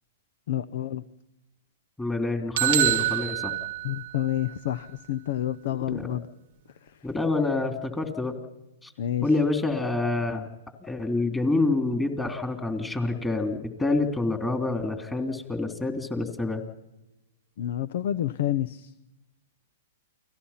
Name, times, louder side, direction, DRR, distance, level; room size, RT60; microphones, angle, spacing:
voice 1, 0.5-1.0 3.8-6.3 9.0-9.3 17.6-18.9, left 12 dB, 65° left, 15 dB, 0.8 m, -29 dB
voice 2, 2.0-3.5 5.9-6.2 7.0-8.3 8.8-8.9 9.2-10.5 10.8-16.6, left 3 dB, 10° left, 5 dB, 3.2 m, -27 dB
sound 1, 2.6-4.5, right 15 dB, 60° right, 1.0 m, -26 dB
29.5 x 18.0 x 5.8 m, 0.98 s
hypercardioid pair, 125°, 0 cm